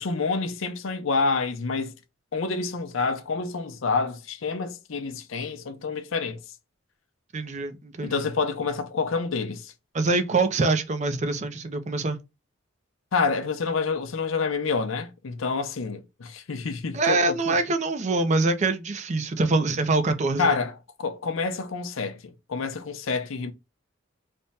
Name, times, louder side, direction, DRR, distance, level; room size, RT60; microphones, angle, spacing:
voice 1, 0.0-1.9 2.3-6.4 8.0-9.7 13.1-17.6 20.4-20.7 21.0-23.5, left 4 dB, 70° left, 0.6 m, -28 dB
voice 2, 7.3-8.2 9.9-12.2 16.9-20.6, right 3 dB, 35° right, 0.4 m, -24 dB
3.4 x 2.1 x 4.0 m
head